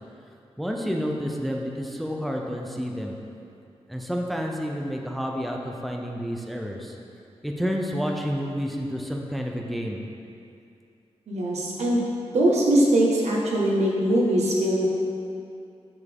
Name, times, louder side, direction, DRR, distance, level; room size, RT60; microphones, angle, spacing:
voice 1, 0.6-3.2 3.9-7.0 7.4-10.1, equal, ahead, 0 dB, 0.5 m, -29 dB
voice 2, 11.3-12.0 12.3-14.9, right 1 dB, 85° right, -4 dB, 1.3 m, -21 dB
7.1 x 6.6 x 3.5 m, 2.6 s
wide cardioid pair, 170°, 11 cm